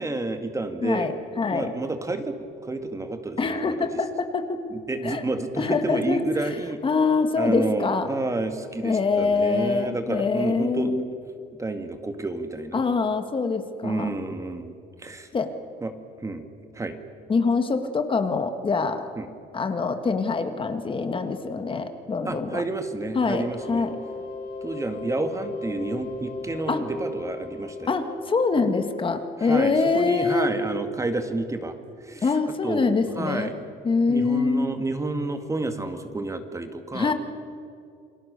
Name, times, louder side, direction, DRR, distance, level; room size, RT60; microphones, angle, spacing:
voice 1, 0.0-1.1 1.5-2.3 2.6-3.9 4.7-6.8 7.4-11.0 11.6-12.8 13.8-14.7 15.0-15.3 15.8-15.9 16.2-16.5 16.7-17.0 19.2-19.3 22.3-23.9 24.6-27.9 29.4-32.3 32.6-33.7 34.1-37.1, right 2 dB, 20° right, 7 dB, 1.9 m, -30 dB
voice 2, 0.8-1.7 3.4-4.6 5.0-5.2 5.6-6.5 6.8-8.1 8.8-11.0 12.7-14.1 15.3-15.5 17.3-19.0 19.5-22.6 23.1-24.0 26.7-26.8 27.9-30.5 32.2-33.5 33.8-34.7 36.9-37.1, left 4 dB, 30° left, 8 dB, 1.8 m, -24 dB
sound 1, 23.1-29.7, left 3 dB, 55° left, 6.8 m, -38 dB
29.0 x 20.5 x 6.8 m, 2.5 s
cardioid pair, 110°, 17 cm